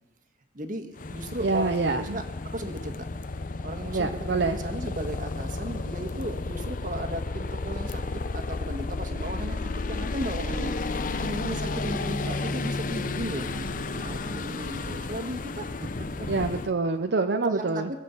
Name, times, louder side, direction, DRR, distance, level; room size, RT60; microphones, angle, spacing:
voice 1, 0.5-2.2 2.5-3.1 3.6-16.3 17.4-17.8, right 1 dB, 50° right, 6 dB, 1.7 m, -36 dB
sound 1, 1.0-16.7, left 3 dB, 50° left, 0.7 m, -32 dB
voice 2, 1.4-2.2 3.9-4.6 16.3-17.9, right 3 dB, 70° right, 7 dB, 0.7 m, -26 dB
21.5 x 7.5 x 8.3 m, 1.1 s
head